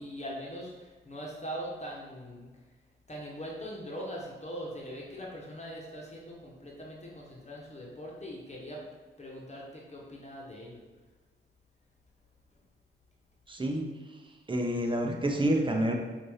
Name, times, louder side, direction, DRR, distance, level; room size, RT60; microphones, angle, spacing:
voice 1, 0.0-2.5 3.1-8.8 9.2-10.8, equal, 30° left, -3 dB, 1.3 m, -41 dB
voice 2, 13.5-13.8 14.5-15.9, right 1 dB, 25° right, 1 dB, 0.8 m, -28 dB
5.0 x 2.8 x 3.3 m, 1.2 s
cardioid pair, 50°, 21 cm